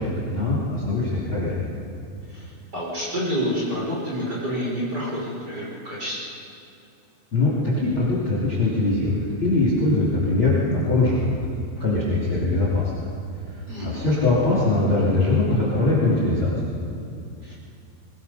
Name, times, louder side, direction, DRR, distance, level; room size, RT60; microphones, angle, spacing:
voice 1, 0.0-1.6 7.3-11.5 11.8-12.9 13.5-16.5, left 2 dB, 30° left, -5 dB, 3.0 m, -22 dB
voice 2, 2.7-6.2 13.7-14.1 17.4-17.5, equal, 20° right, -6 dB, 4.6 m, -28 dB
22.5 x 21.0 x 5.6 m, 2.5 s
omnidirectional pair, 5.3 m